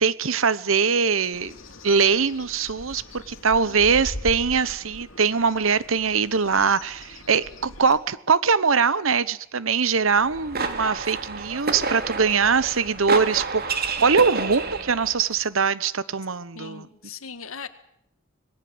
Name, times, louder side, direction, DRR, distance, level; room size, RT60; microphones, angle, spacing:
voice 1, 0.0-1.5 1.8-16.9, right 5 dB, 75° right, 1.0 m, -22 dB
Bird, 1.3-8.0, left 1 dB, 65° left, 2.6 m, -40 dB
sound 1, 10.1-15.2, right 4 dB, 50° right, 2.4 m, -29 dB
voice 2, 16.5-17.7, left 5 dB, 85° left, 1.8 m, -38 dB
26.0 x 20.5 x 7.9 m
head